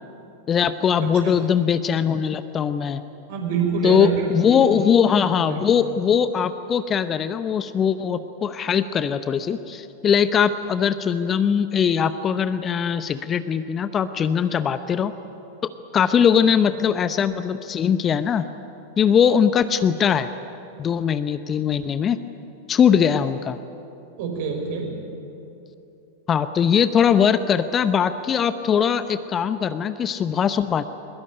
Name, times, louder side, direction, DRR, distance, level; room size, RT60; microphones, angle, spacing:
voice 1, 0.5-3.0 3.8-15.1 15.6-18.5 19.0-20.3 20.8-22.2 22.7-23.6 26.3-30.8, left 7 dB, 25° left, 12 dB, 0.8 m, -21 dB
voice 2, 1.0-1.3 3.3-4.2 4.5-4.7 5.4-5.6 24.2-24.9, right 5 dB, 50° right, 2 dB, 5.5 m, -26 dB
22.0 x 20.5 x 9.8 m, 2.9 s
figure-of-eight pair, 90°, 0 cm